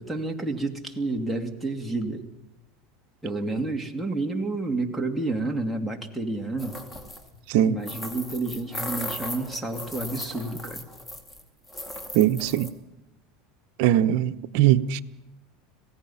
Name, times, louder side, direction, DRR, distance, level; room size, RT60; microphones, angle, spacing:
voice 1, 0.0-2.2 3.2-6.8 7.7-10.8, right 2 dB, ahead, 0 dB, 2.5 m, -30 dB
sound 1, 6.6-7.3 7.8-11.4 11.7-12.7, left 1 dB, 15° left, 2.4 m, -37 dB
voice 2, 12.1-12.7 13.8-15.0, right 12 dB, 65° right, 10 dB, 0.9 m, -21 dB
26.5 x 17.5 x 5.8 m, 0.93 s
supercardioid pair, 115°, 0 cm